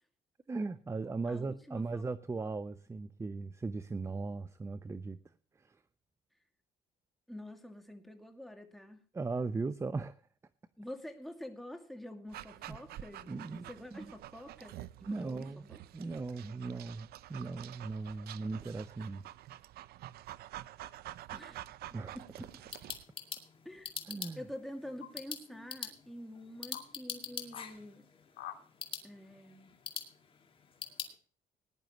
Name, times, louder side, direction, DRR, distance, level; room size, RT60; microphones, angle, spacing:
voice 1, 0.5-5.2 5.6-5.8 9.1-10.2 12.7-12.8 13.3-13.6 13.9-14.1 15.0-15.6 15.9-19.2 21.9-22.2 24.1-24.4, right 3 dB, 15° right, 14 dB, 0.6 m, -38 dB
voice 2, 1.3-2.0 2.4-2.5 7.3-9.0 10.8-14.8 15.1-15.8 18.5-18.6 21.3-21.6 22.1-22.5 23.6-28.1 29.0-29.7, left 1 dB, ahead, 4 dB, 2.3 m, -47 dB
Dog, 12.3-23.0, right 14 dB, 70° right, 0.6 m, -48 dB
sound 1, 20.9-21.0 22.4-22.9 25.0-25.1 26.0-26.1 26.7-26.9 27.5-27.7 28.3-28.6, left 11 dB, 80° left, 1.9 m, -47 dB
sound 2, 22.4-31.1, left 6 dB, 30° left, 2.2 m, -45 dB
19.5 x 10.5 x 3.1 m, 0.40 s
cardioid pair, 110°, 17 cm